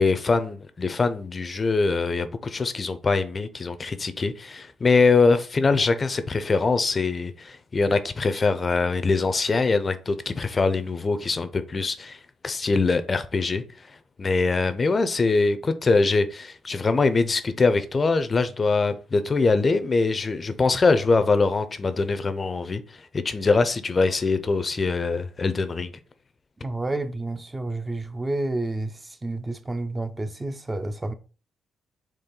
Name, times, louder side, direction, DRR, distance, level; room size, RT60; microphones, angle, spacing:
voice 1, 0.0-13.6 14.2-22.8 23.1-25.9, left 4 dB, 30° left, 0.5 m, -23 dB
voice 2, 26.6-31.1, right 2 dB, 20° right, 0.5 m, -30 dB
4.3 x 3.0 x 3.8 m
cardioid pair, 90°, 0 cm